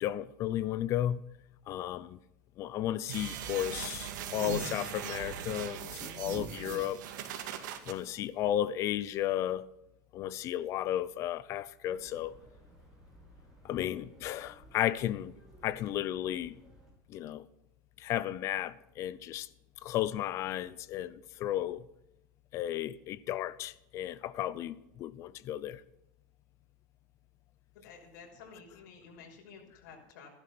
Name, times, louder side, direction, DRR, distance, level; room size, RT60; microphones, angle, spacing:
voice 1, 0.0-1.2 1.7-2.2 2.6-7.0 7.9-9.6 10.1-12.4 13.6-15.3 15.6-16.5 17.1-17.5 18.0-19.5 19.8-21.9 22.5-25.8, left 12 dB, 30° left, 0.6 m, -34 dB
sound 1, 3.1-7.9, right 9 dB, 75° right, 2.1 m, -39 dB
sound 2, 11.9-16.9, right 1 dB, 5° right, 5.2 m, -58 dB
voice 2, 27.8-30.3, left 5 dB, 70° left, 5.9 m, -52 dB
15.0 x 11.5 x 6.1 m
supercardioid pair, 175°, 10 cm